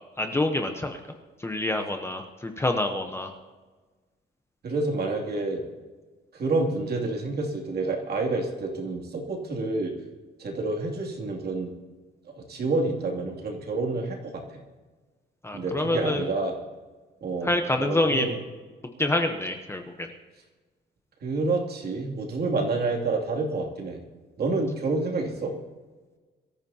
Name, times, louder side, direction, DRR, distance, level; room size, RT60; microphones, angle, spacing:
voice 1, 0.2-1.0 1.4-3.3 15.4-16.2 17.4-18.3 19.0-20.1, left 2 dB, 15° left, 4 dB, 0.9 m, -26 dB
voice 2, 4.6-5.6 6.3-9.9 10.4-11.7 12.3-14.6 15.5-16.5 17.2-17.5 17.8-18.4 21.2-24.0 24.4-25.5, right 3 dB, 55° right, 0 dB, 2.7 m, -28 dB
23.0 x 14.0 x 2.9 m, 1.3 s
wide cardioid pair, 170°, 19 cm